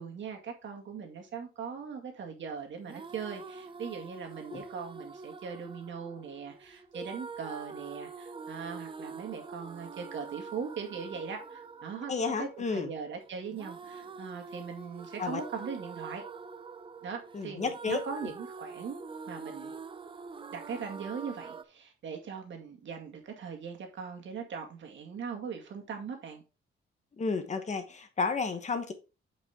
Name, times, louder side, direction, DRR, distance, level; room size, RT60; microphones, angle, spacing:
voice 1, 0.0-16.2 17.0-19.7 20.5-26.4, right 6 dB, 65° right, 2.0 m, -40 dB
sound 1, 2.8-21.6, right 5 dB, 25° right, 0.5 m, -45 dB
voice 2, 12.1-12.9 15.2-15.4 17.3-18.0 27.2-28.9, left 4 dB, 35° left, 1.1 m, -32 dB
8.4 x 5.4 x 3.6 m
wide cardioid pair, 155°, 21 cm